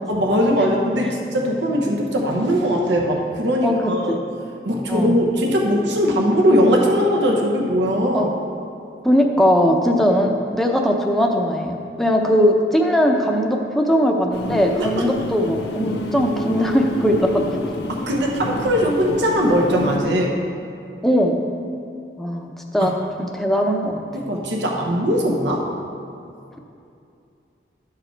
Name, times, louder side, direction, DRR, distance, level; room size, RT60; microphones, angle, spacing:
voice 1, 0.1-4.2 4.6-8.3 14.8-15.0 17.9-20.3 22.8-22.9 24.1-25.7, equal, 80° right, 0 dB, 0.9 m, -20 dB
voice 2, 3.6-4.2 4.9-5.2 8.1-8.3 9.0-17.7 21.0-21.4 22.2-22.9 23.2-24.0, equal, ahead, 1 dB, 0.6 m, -19 dB
sound 1, 14.3-20.0, left 1 dB, 75° left, 0.7 m, -29 dB
11.5 x 4.9 x 4.5 m, 2.6 s
head